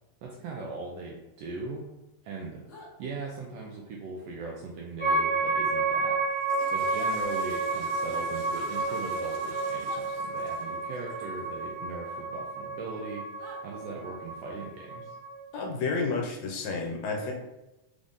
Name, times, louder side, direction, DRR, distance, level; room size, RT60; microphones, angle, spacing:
voice 1, 0.2-1.9 2.2-2.6 3.0-6.2 6.7-13.3 13.6-15.2, right 3 dB, 80° right, -1 dB, 1.5 m, -39 dB
sound 1, 2.7-2.9 5.0-5.2 7.2-7.4 8.7-9.0 9.8-10.0 12.1-12.2 13.4-13.6, equal, 45° left, 0.9 m, -48 dB
sound 2, 5.0-15.5, right 3 dB, 30° right, 1.2 m, -31 dB
Water / Toilet flush, 6.2-11.4, right 1 dB, 60° right, 1.9 m, -49 dB
voice 2, 15.5-17.3, left 4 dB, 75° left, 0 dB, 2.0 m, -30 dB
4.8 x 2.6 x 3.6 m, 0.99 s
omnidirectional pair, 3.3 m